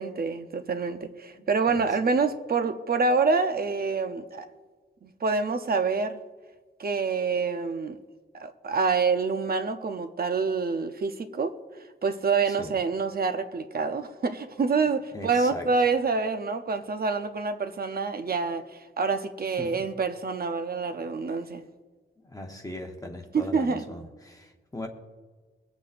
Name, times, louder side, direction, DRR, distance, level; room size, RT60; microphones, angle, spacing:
voice 1, 0.0-4.5 5.0-6.2 6.8-8.0 8.3-11.6 12.0-21.6 23.3-23.8, right 4 dB, 50° right, 0.6 m, -27 dB
voice 2, 15.1-15.7 19.6-19.9 22.2-24.9, left 1 dB, 15° left, 0.9 m, -39 dB
23.0 x 8.3 x 2.5 m
wide cardioid pair, 165°, 20 cm